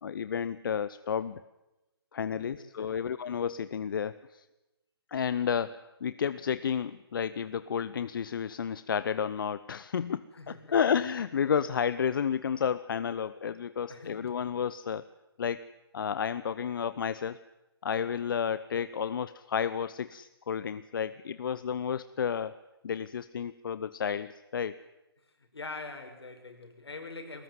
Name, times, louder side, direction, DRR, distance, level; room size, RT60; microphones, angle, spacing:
voice 1, 0.0-1.4 2.1-4.4 5.1-15.0 15.4-15.7 15.9-17.4 17.8-22.5 22.8-24.7, left 7 dB, 55° left, 15 dB, 0.8 m, -31 dB
voice 2, 2.3-3.1 10.4-10.8 13.9-14.2 25.4-27.4, left 3 dB, 80° left, 5 dB, 5.7 m, -44 dB
22.0 x 19.5 x 9.5 m, 0.99 s
figure-of-eight pair, 145°, 13 cm